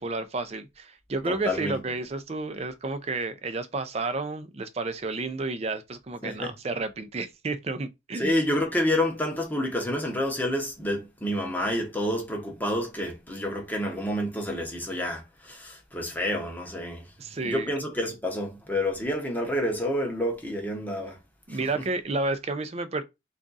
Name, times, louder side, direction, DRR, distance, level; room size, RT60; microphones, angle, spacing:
voice 1, 0.0-8.4 17.2-17.7 21.5-23.0, right 3 dB, 35° right, 0.4 m, -31 dB
voice 2, 1.3-1.8 6.2-6.5 8.1-17.1 17.4-21.2 21.5-21.8, left 1 dB, 10° left, 0.8 m, -29 dB
3.6 x 2.4 x 3.9 m
head